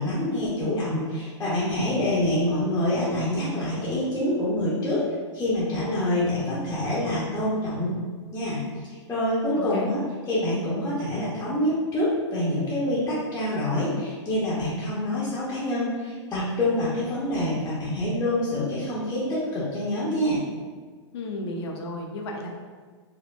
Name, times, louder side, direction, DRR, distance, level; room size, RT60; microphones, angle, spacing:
voice 1, 0.0-5.0 5.3-7.9 8.3-8.6 8.8-10.0 10.3-20.4, left 1 dB, 15° left, -9 dB, 0.8 m, -26 dB
voice 2, 9.6-9.9 21.1-22.5, left 1 dB, 60° left, 1 dB, 0.6 m, -33 dB
4.3 x 2.1 x 2.2 m, 1.5 s
hypercardioid pair, 115°, 15 cm